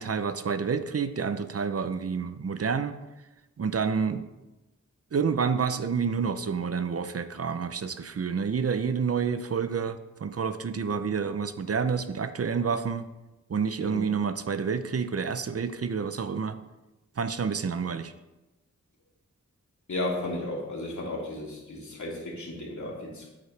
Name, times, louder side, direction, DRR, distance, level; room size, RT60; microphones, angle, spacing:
voice 1, 0.0-3.0 3.6-4.2 5.1-13.1 13.5-16.6 17.2-18.1, right 6 dB, 50° right, 11 dB, 0.6 m, -29 dB
voice 2, 19.9-23.3, left 1 dB, 70° left, -4 dB, 3.0 m, -34 dB
9.8 x 9.3 x 3.3 m, 1.0 s
wide cardioid pair, 85°, 30 cm